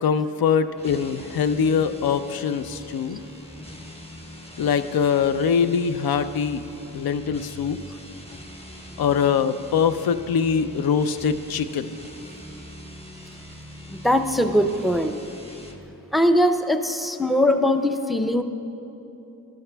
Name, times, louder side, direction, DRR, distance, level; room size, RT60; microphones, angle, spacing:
voice 1, 0.0-3.2 4.6-6.6 6.9-7.8 9.0-11.9, left 6 dB, 65° left, 12 dB, 0.5 m, -23 dB
sound 1, 0.7-15.9, equal, 15° left, 1.0 m, -42 dB
voice 2, 13.9-15.1 16.1-18.4, equal, ahead, 8 dB, 0.5 m, -21 dB
13.0 x 12.0 x 2.2 m, 2.9 s
cardioid pair, 45°, 40 cm